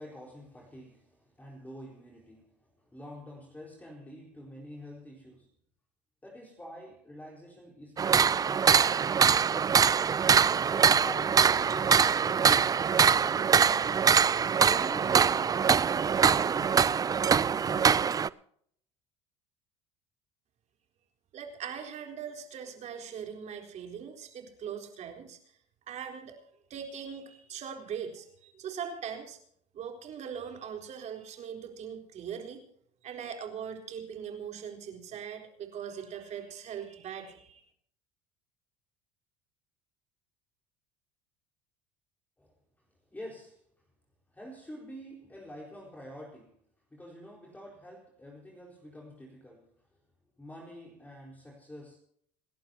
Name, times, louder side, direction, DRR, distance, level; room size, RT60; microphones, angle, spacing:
voice 1, 0.0-2.5 2.8-5.5 6.2-9.1 9.8-13.5 14.6-16.9 17.5-17.8 42.4-42.5 43.1-43.6 44.3-46.6 46.9-49.7 50.4-52.0, equal, 10° left, 4.5 m, -47 dB
sound 1, 8.0-18.3, right 7 dB, 25° right, 0.5 m, -23 dB
voice 2, 21.3-25.4 25.9-29.4 29.7-32.6 33.0-37.6, right 7 dB, 50° right, 4.0 m, -41 dB
27.5 x 11.5 x 2.9 m
supercardioid pair, 95°, 15 cm